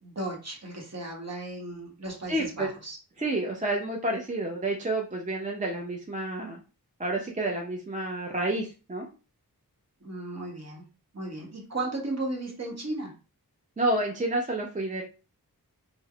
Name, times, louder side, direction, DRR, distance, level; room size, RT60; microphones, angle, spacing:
voice 1, 0.0-3.0 10.0-10.8 11.1-13.1, right 2 dB, 40° right, -1 dB, 0.9 m, -35 dB
voice 2, 2.3-2.7 3.2-6.6 7.0-9.1 13.8-15.0, right 2 dB, 20° right, 0 dB, 0.4 m, -29 dB
3.2 x 2.0 x 2.3 m, 0.34 s
wide cardioid pair, 55°, 38 cm